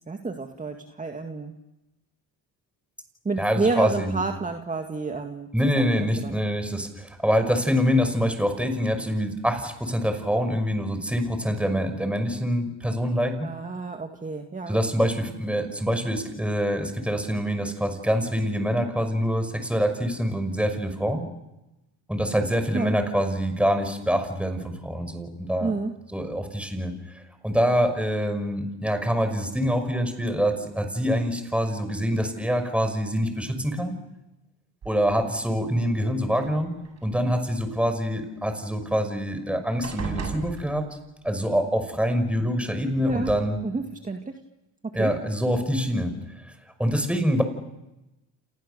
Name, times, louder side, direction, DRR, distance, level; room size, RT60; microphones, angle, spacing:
voice 1, 0.1-1.6 3.2-6.4 13.4-14.8 22.7-23.0 25.6-25.9 43.0-43.3 43.6-44.4 44.8-45.1, right 3 dB, 20° right, 4 dB, 2.1 m, -30 dB
voice 2, 3.4-4.2 5.5-13.5 14.7-21.2 22.1-25.7 26.1-33.9 34.9-36.7 37.0-40.8 41.2-43.6 44.9-46.5 46.8-47.4, equal, 5° right, 8 dB, 5.8 m, -25 dB
sound 1, 34.8-35.4 36.2-37.1 38.9-39.0 39.3-39.5 39.8-41.3 42.4-42.5 43.0-43.4, right 5 dB, 40° right, 7.4 m, -37 dB
28.5 x 28.5 x 6.9 m, 0.97 s
cardioid pair, 95°, 40 cm